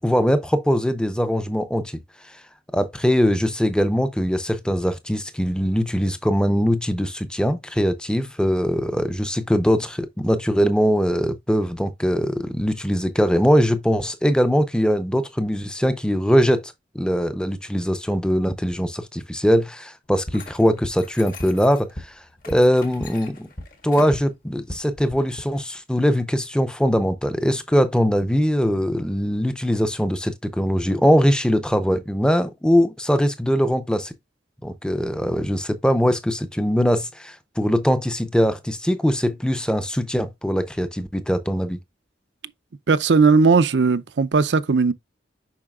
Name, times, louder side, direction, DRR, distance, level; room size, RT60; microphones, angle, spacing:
voice 1, 0.0-2.0 2.7-22.1 22.5-23.5 23.8-34.1 34.6-41.8, equal, 5° left, 0.6 m, -21 dB
sound 1, 20.0-24.3 24.6-25.4, equal, 30° left, 0.9 m, -38 dB
sound 2, 20.3-21.9 22.4-24.2, left 5 dB, 50° left, 1.6 m, -43 dB
voice 2, 42.9-44.9, right 4 dB, 80° right, 0.5 m, -17 dB
7.2 x 5.6 x 2.4 m
head